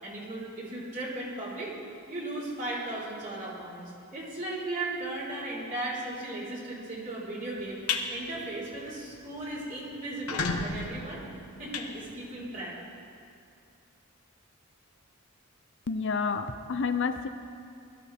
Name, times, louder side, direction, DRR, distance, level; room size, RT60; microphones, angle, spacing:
voice 1, 0.0-1.7 2.1-11.2 11.6-12.7, right 2 dB, 40° right, -7 dB, 4.2 m, -36 dB
sound 1, 7.6-8.1 8.5-8.7 9.1-9.2 9.4-9.5 10.1-12.6, left 4 dB, 85° left, 1.2 m, -33 dB
voice 2, 15.9-17.3, left 5 dB, 55° left, 9 dB, 0.6 m, -29 dB
21.0 x 14.0 x 3.6 m, 2.4 s
head